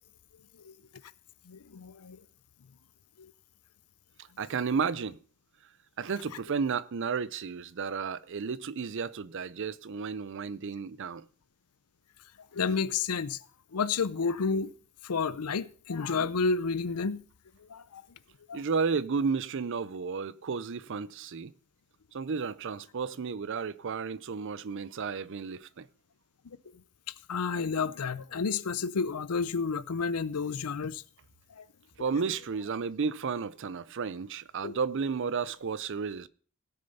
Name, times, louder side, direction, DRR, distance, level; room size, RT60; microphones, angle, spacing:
voice 1, 1.5-2.2 3.2-3.3 12.5-13.4 13.7-14.7 15.0-17.2 17.7-18.0 18.5-18.6 27.3-31.0 31.6-31.7 34.6-34.7, left 5 dB, 90° left, 0.6 m, -30 dB
voice 2, 4.4-5.2 6.0-11.2 18.5-21.5 22.1-25.9 32.0-36.3, right 5 dB, 55° right, 0.5 m, -32 dB
16.5 x 6.6 x 5.5 m
head